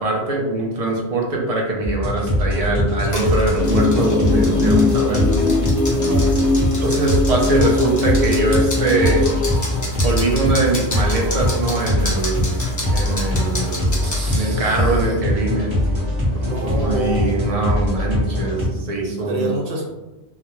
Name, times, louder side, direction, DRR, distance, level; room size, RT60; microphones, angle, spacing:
voice 1, 0.0-5.4 6.8-9.2 10.0-12.5 12.9-13.9 14.3-15.7 16.4-19.5, right 2 dB, 50° right, -1 dB, 0.4 m, -22 dB
sound 1, 1.8-18.7, left 1 dB, 30° right, 0.8 m, -22 dB
sound 2, 3.0-14.4, left 1 dB, 25° left, 0.4 m, -32 dB
sound 3, 3.6-9.5, left 2 dB, 60° left, 0.7 m, -20 dB
voice 2, 14.0-15.2 16.5-17.5 19.1-19.8, right 1 dB, 70° right, -2 dB, 0.9 m, -28 dB
2.3 x 2.0 x 2.9 m, 1.0 s
omnidirectional pair, 1.1 m